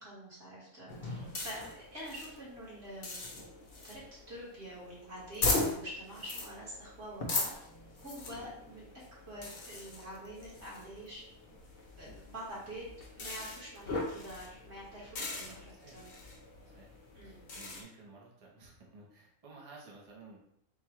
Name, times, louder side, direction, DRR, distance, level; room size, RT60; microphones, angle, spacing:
voice 1, 0.0-3.4 3.8-4.0 4.3-7.5 8.0-8.9 9.3-11.2 12.0-12.9 13.1-16.1 17.2-17.4, right 1 dB, 50° right, -7 dB, 2.0 m, -46 dB
sound 1, 0.9-17.8, left 3 dB, 45° left, 0.9 m, -39 dB
voice 2, 15.4-16.1 16.7-16.9 17.2-20.4, right 3 dB, 30° right, -3 dB, 0.8 m, -54 dB
3.7 x 2.5 x 4.5 m, 0.74 s
omnidirectional pair, 1.5 m